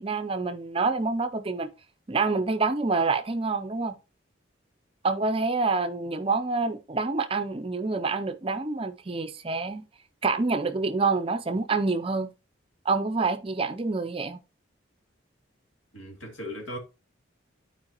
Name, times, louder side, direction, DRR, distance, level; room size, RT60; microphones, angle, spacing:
voice 1, 0.0-1.7 2.1-4.0 5.0-9.8 10.2-12.3 12.9-14.4, right 3 dB, 30° right, 0.5 m, -27 dB
voice 2, 15.9-16.8, equal, 75° left, 2.2 m, -37 dB
11.5 x 4.7 x 2.8 m
head